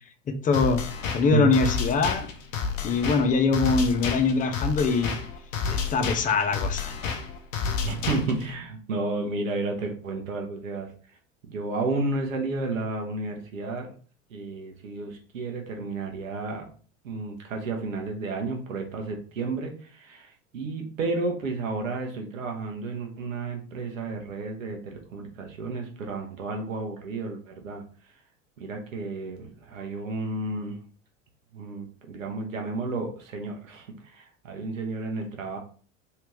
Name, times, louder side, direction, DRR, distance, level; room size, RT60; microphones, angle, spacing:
voice 1, 0.3-0.8 1.1-2.3 2.8-5.2 5.7-6.9, left 4 dB, 20° left, 7 dB, 0.6 m, -23 dB
sound 1, 0.5-8.5, left 5 dB, 75° left, 0.8 m, -30 dB
voice 2, 7.8-10.9 11.5-13.9 14.3-16.7 17.0-27.8 28.6-30.8 31.5-35.6, right 3 dB, 85° right, 2 dB, 0.9 m, -32 dB
3.3 x 2.8 x 3.1 m, 0.42 s
hypercardioid pair, 85°, 39 cm